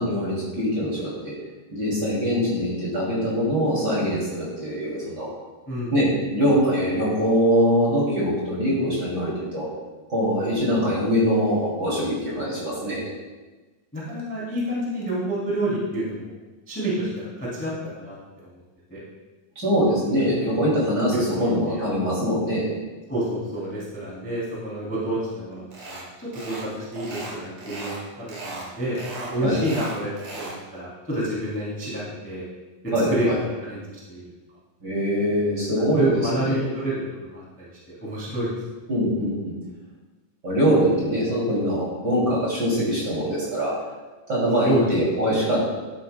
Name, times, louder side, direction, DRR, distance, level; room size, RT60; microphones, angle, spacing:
voice 1, 0.0-1.3 1.7-5.3 5.9-9.7 10.1-13.0 19.6-22.7 29.4-29.6 32.9-33.4 34.8-36.7 38.9-39.5 40.4-43.7 44.3-45.6, equal, 30° right, -6 dB, 3.0 m, -23 dB
voice 2, 13.9-16.3 16.7-18.2 18.9-19.0 20.9-21.8 23.1-32.4 32.8-33.8 34.1-34.2 36.0-37.7 38.0-38.6 44.6-44.8 45.2-45.3, right 1 dB, 5° left, -7 dB, 1.9 m, -29 dB
sound 1, 25.7-26.1 26.3-26.7 26.9-28.0 28.3-28.7 29.0-30.6, right 3 dB, 55° right, 2.9 m, -37 dB
12.5 x 9.1 x 2.2 m, 1.2 s
omnidirectional pair, 3.9 m